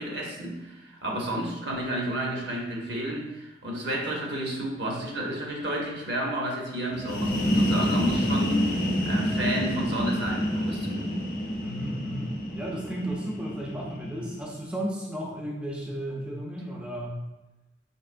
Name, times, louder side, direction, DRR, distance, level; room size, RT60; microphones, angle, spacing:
voice 1, 0.0-8.8 9.0-11.2, equal, 60° right, -1 dB, 0.8 m, -31 dB
sound 1, 6.9-14.5, equal, 50° left, 0.5 m, -28 dB
voice 2, 11.6-17.2, equal, 5° right, -3 dB, 0.4 m, -34 dB
4.4 x 2.8 x 2.4 m, 1.0 s
head